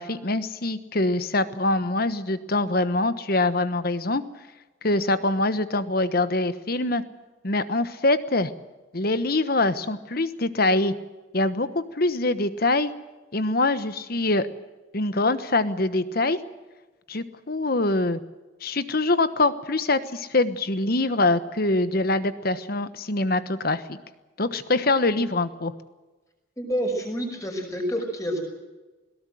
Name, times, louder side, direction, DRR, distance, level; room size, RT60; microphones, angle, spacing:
voice 1, 0.0-4.2 4.8-7.0 7.4-8.5 8.9-10.9 11.3-12.9 13.3-14.5 14.9-16.4 17.1-18.2 18.6-24.0 24.4-25.7, left 2 dB, 50° left, 12 dB, 1.2 m, -24 dB
voice 2, 26.6-28.4, equal, 15° left, 2 dB, 5.7 m, -28 dB
21.5 x 18.0 x 7.9 m, 1.2 s
head